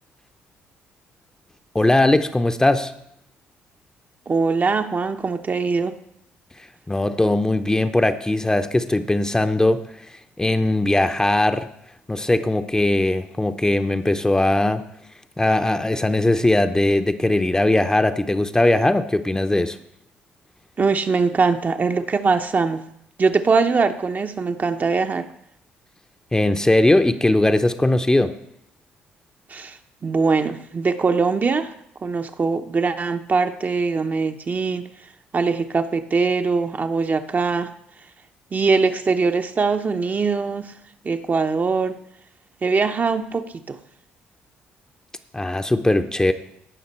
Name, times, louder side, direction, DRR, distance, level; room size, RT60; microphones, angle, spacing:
voice 1, 1.7-2.9 6.9-9.9 10.4-11.7 12.1-14.8 15.4-19.8 26.3-28.3 45.3-46.3, left 1 dB, 15° left, 8 dB, 0.7 m, -19 dB
voice 2, 4.3-6.0 20.8-22.9 23.2-25.3 29.5-31.7 32.0-34.9 35.3-37.7 38.5-40.7 41.0-42.0 42.6-43.8, right 4 dB, 35° right, 7 dB, 0.8 m, -22 dB
16.5 x 5.8 x 4.4 m, 0.74 s
hypercardioid pair, 55°, 5 cm